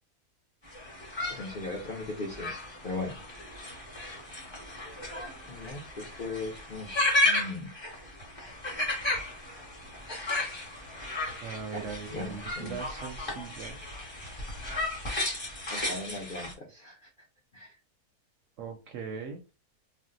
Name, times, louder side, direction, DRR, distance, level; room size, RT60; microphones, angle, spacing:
sound 1, 0.7-16.5, left 2 dB, 20° left, 0.8 m, -34 dB
voice 1, 1.3-2.5 2.8-3.2 5.5-6.9 7.2-7.7 11.7-12.8 15.7-17.0 17.5-17.7, left 2 dB, 60° left, -2 dB, 0.5 m, -38 dB
voice 2, 11.4-13.8 18.6-19.4, right 6 dB, 65° right, 4 dB, 0.8 m, -39 dB
2.5 x 2.0 x 3.7 m, 0.29 s
omnidirectional pair, 1.6 m